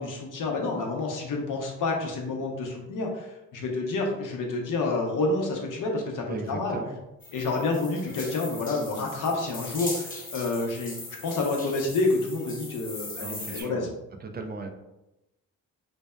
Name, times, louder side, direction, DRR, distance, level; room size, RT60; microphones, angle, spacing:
voice 1, 0.0-6.8 7.3-11.0 11.2-13.9, left 3 dB, 60° left, 0 dB, 0.7 m, -29 dB
voice 2, 6.3-7.0 13.2-13.9 14.2-14.7, right 3 dB, 25° right, 4 dB, 0.4 m, -37 dB
sound 1, 7.2-13.6, left 2 dB, 25° left, 0.7 m, -40 dB
2.6 x 2.1 x 2.2 m, 0.94 s
supercardioid pair, 55°, 36 cm